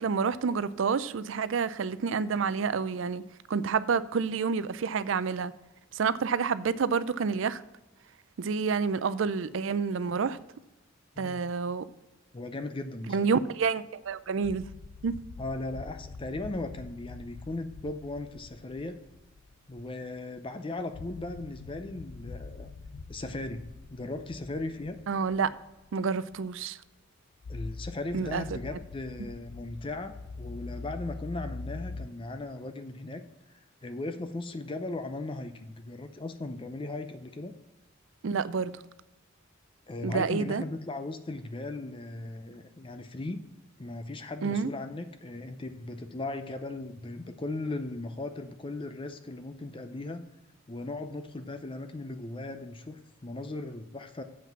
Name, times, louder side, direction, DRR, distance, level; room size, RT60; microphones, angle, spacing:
voice 1, 0.0-3.2 3.5-5.5 5.9-7.6 8.4-10.4 11.2-11.9 13.1-14.6 15.0-15.2 25.1-25.5 25.9-26.8 28.1-28.4 38.2-38.7 40.0-40.6 44.4-44.7, right 5 dB, 65° right, 16 dB, 0.4 m, -28 dB
voice 2, 12.3-13.3 15.4-19.0 19.7-22.7 23.1-23.6 23.9-25.0 27.5-33.2 33.8-37.5 39.9-43.4 43.8-50.2 50.7-54.2, left 2 dB, 25° left, 8 dB, 0.5 m, -37 dB
sound 1, 14.2-20.4 20.8-26.0 26.3-26.5 27.4-32.1, left 3 dB, 75° left, 0.5 m, -44 dB
7.4 x 5.8 x 7.2 m, 1.0 s
head